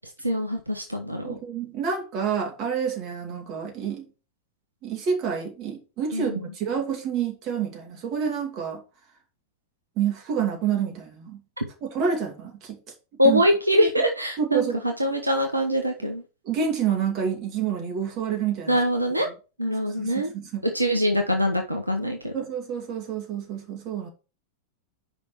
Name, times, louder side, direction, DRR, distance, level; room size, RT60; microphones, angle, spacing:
voice 1, 0.2-1.4 6.1-6.5 13.2-16.2 18.7-19.3 19.6-20.3 20.7-22.4, equal, 85° right, 1.1 m, -24 dB
voice 2, 1.2-4.1 4.8-8.8 10.0-11.4 11.8-12.8 13.2-13.4 13.8-13.9 14.4-14.8 16.4-18.8 19.8-20.6 22.3-24.1, right 7 dB, 35° right, 2.5 m, -28 dB
5.5 x 5.1 x 6.0 m
figure-of-eight pair, 90°, 0 cm